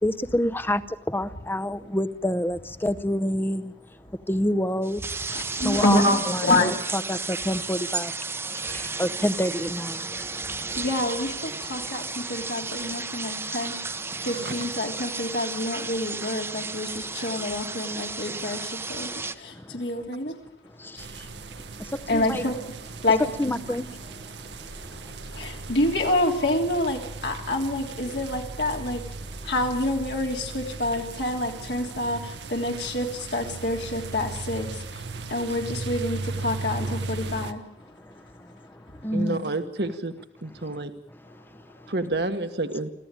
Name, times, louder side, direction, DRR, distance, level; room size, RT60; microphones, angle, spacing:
voice 1, 0.0-5.0 5.6-6.0 6.3-8.3 8.5-10.7 14.1-14.3 19.5-19.8 20.8-22.5 23.4-25.7 35.2-35.3 38.0-39.4 40.7-40.8 41.3-41.9, left 1 dB, 10° left, 0.8 m, -29 dB
sound 1, 4.8-19.4, right 4 dB, 15° right, 0.9 m, -33 dB
voice 2, 5.3-6.9 10.0-10.1 10.7-20.4 22.1-22.6 23.0-23.5 24.9-25.0 25.3-37.6 38.9-39.0, left 1 dB, 75° left, 3.2 m, -27 dB
voice 3, 14.2-14.5 39.1-40.1 40.4-40.9 41.9-42.9, right 2 dB, 65° right, 1.5 m, -29 dB
sound 2, 21.0-37.5, right 3 dB, 80° right, 1.3 m, -37 dB
26.0 x 15.5 x 9.0 m
head